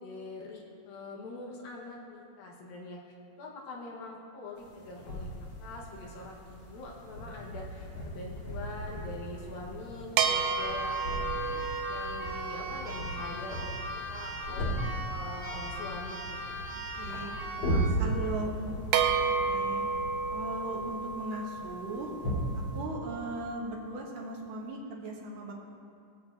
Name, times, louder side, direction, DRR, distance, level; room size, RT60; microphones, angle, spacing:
voice 1, 0.0-3.0 3.4-5.3 5.6-11.5 11.9-14.6 15.1-16.4 17.1-18.3, left 2 dB, 75° left, -2 dB, 3.0 m, -44 dB
sound 1, 4.6-22.9, right 1 dB, 50° left, 2.8 m, -37 dB
Keyboard (musical), 10.2-18.0, equal, 20° right, 0.9 m, -39 dB
sound 2, 10.2-13.9 18.9-23.3, right 5 dB, 90° right, 2.4 m, -32 dB
voice 2, 17.0-17.3 18.0-18.8 19.5-19.9 20.3-22.1 22.7-25.5, right 2 dB, 70° right, -2 dB, 2.6 m, -38 dB
20.0 x 8.0 x 2.6 m, 2.4 s
omnidirectional pair, 4.2 m